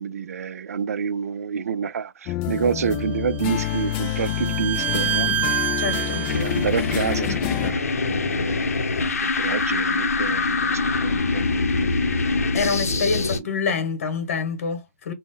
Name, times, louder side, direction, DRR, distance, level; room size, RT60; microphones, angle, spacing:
voice 1, 0.0-8.6 9.2-11.9 12.7-13.5, right 7 dB, 80° right, 0.4 m, -29 dB
sound 1, 2.3-7.7, left 14 dB, 25° left, 0.4 m, -28 dB
Bowed string instrument, 2.9-6.7, right 11 dB, 20° right, 0.6 m, -28 dB
sound 2, 5.3-13.4, left 3 dB, 85° left, 0.6 m, -24 dB
voice 2, 5.8-6.3 12.5-15.1, left 5 dB, 60° left, 1.0 m, -26 dB
3.9 x 2.0 x 2.2 m
hypercardioid pair, 140°, 8 cm